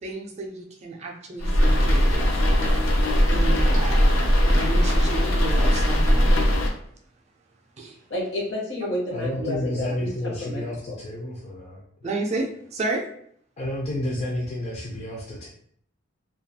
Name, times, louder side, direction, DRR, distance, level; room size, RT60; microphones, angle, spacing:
voice 1, 0.0-2.3 3.2-4.2 4.4-6.4 7.8-8.0 12.0-13.1, right 3 dB, 35° right, 1 dB, 0.3 m, -32 dB
sound 1, 1.4-6.7, equal, 85° left, 0.5 m, -19 dB
voice 2, 8.1-11.0, left 1 dB, 65° left, -3 dB, 0.9 m, -31 dB
voice 3, 9.1-11.8 13.6-15.5, left 1 dB, 35° left, -4 dB, 0.4 m, -30 dB
2.3 x 2.3 x 2.7 m, 0.65 s
head